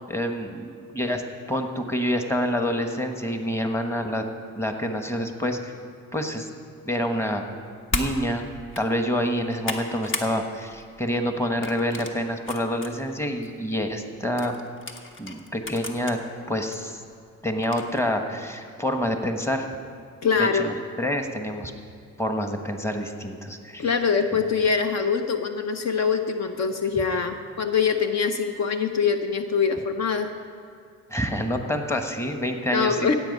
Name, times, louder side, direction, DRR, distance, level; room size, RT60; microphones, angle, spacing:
voice 1, 0.1-1.2 1.5-4.3 4.5-5.7 6.1-6.5 6.8-7.5 7.9-8.5 8.8-14.6 15.2-16.2 16.5-17.0 17.4-19.7 20.4-21.7 22.2-23.9 31.1-33.1, equal, 10° left, 5 dB, 1.2 m, -27 dB
sound 1, 7.9-8.1 8.6-8.8 9.3-10.3 10.7-11.0 11.6-12.9 13.4-13.5 14.4-16.2 16.7-16.8 17.6-18.0, left 2 dB, 40° left, 1.3 m, -33 dB
voice 2, 20.2-20.7 23.8-30.3 32.7-33.1, left 6 dB, 60° left, 7 dB, 0.8 m, -24 dB
16.0 x 8.1 x 5.4 m, 2.3 s
cardioid pair, 90°, 30 cm